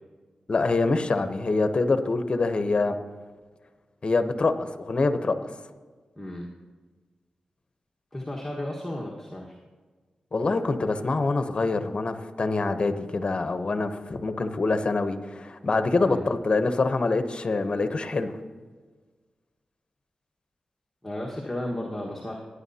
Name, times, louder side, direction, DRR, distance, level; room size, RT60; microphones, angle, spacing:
voice 1, 0.5-3.0 4.0-5.5 10.3-18.4, left 3 dB, 45° left, 9 dB, 0.9 m, -25 dB
voice 2, 8.1-9.6 16.0-16.2 21.0-22.3, left 1 dB, 10° left, -3 dB, 1.5 m, -33 dB
17.0 x 9.7 x 2.8 m, 1.4 s
cardioid pair, 55°, 2 cm